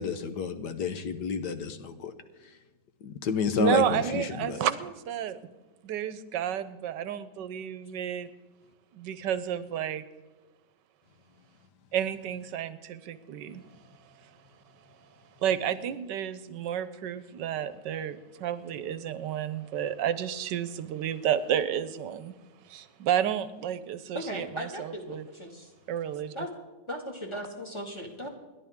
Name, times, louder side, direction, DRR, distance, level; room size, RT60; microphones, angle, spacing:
voice 1, 0.0-2.1 2.4-2.5 3.0-4.6, left 6 dB, 70° left, 9 dB, 1.5 m, -30 dB
voice 2, 3.6-5.4 5.8-8.3 8.9-10.0 11.9-13.6 15.4-22.3 22.7-25.2 25.9-26.3, right 9 dB, 75° right, 14 dB, 1.3 m, -31 dB
voice 3, 24.1-25.7 26.3-26.5 26.9-28.3, equal, 15° left, 2 dB, 2.0 m, -37 dB
28.5 x 11.0 x 3.6 m, 1.2 s
omnidirectional pair, 1.9 m